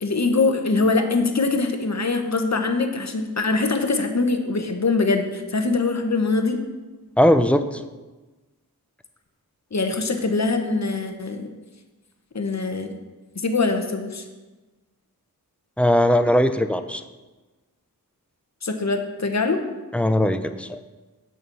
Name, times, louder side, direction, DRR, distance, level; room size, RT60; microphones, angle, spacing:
voice 1, 0.0-6.6 9.7-11.5 12.3-12.9 13.4-14.2 18.6-19.6, left 3 dB, 45° left, 5 dB, 1.1 m, -23 dB
voice 2, 7.2-7.8 15.8-17.0 19.9-20.8, left 1 dB, 5° left, 9 dB, 0.5 m, -19 dB
6.5 x 6.2 x 6.9 m, 1.2 s
wide cardioid pair, 65°, 37 cm